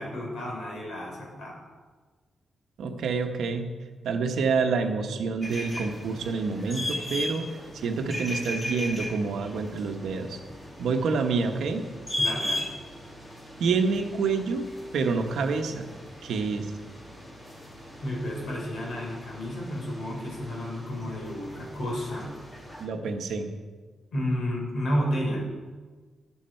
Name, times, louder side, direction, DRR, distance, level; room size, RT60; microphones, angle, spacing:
voice 1, 0.0-1.5 12.2-12.6 18.0-22.3 24.1-25.4, equal, 55° left, -2 dB, 4.1 m, -31 dB
voice 2, 2.8-3.7 4.0-7.5 7.8-10.4 10.8-11.9 13.6-14.7 14.9-15.9 16.2-16.7 22.8-23.5, right 4 dB, 75° right, 5 dB, 1.1 m, -27 dB
sound 1, 5.4-22.9, left 1 dB, 15° left, 1.7 m, -38 dB
13.0 x 10.0 x 4.5 m, 1.4 s
wide cardioid pair, 180°, 0 cm